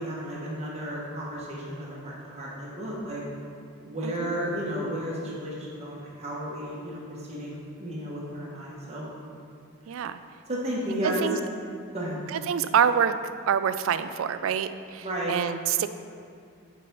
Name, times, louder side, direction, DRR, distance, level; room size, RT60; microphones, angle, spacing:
voice 1, 0.0-3.2 3.8-9.1 10.5-11.3 11.9-12.2 15.0-15.4, equal, 30° right, -5 dB, 1.2 m, -33 dB
voice 2, 9.9-10.2 11.0-11.4 12.3-13.1 13.5-15.9, right 8 dB, 65° right, 12 dB, 0.3 m, -26 dB
6.8 x 4.8 x 5.4 m, 2.4 s
head